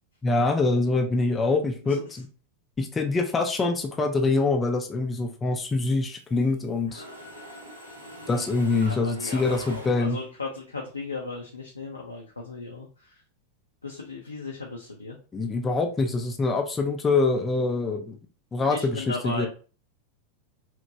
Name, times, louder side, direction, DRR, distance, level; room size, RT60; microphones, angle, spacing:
voice 1, 0.2-2.3 2.8-7.0 8.3-10.2 15.3-18.2 18.5-19.5, left 3 dB, 15° left, 3 dB, 0.3 m, -25 dB
Mechanisms, 5.6-6.6 6.9-10.4, right 1 dB, 85° right, 0.7 m, -44 dB
voice 2, 8.8-13.2 13.8-15.2 18.7-19.5, left 3 dB, 80° left, -1 dB, 0.4 m, -36 dB
2.9 x 2.1 x 2.5 m, 0.37 s
figure-of-eight pair, 90°, 0 cm